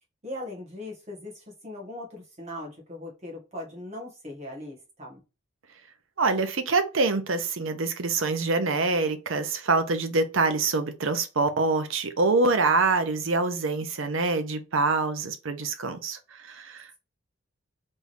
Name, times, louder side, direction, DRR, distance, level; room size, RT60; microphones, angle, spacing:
voice 1, 0.2-5.2, left 1 dB, 30° right, 1.4 m, -39 dB
voice 2, 6.2-16.2 16.4-17.0, right 3 dB, 70° right, 0.7 m, -25 dB
3.6 x 3.1 x 2.6 m
head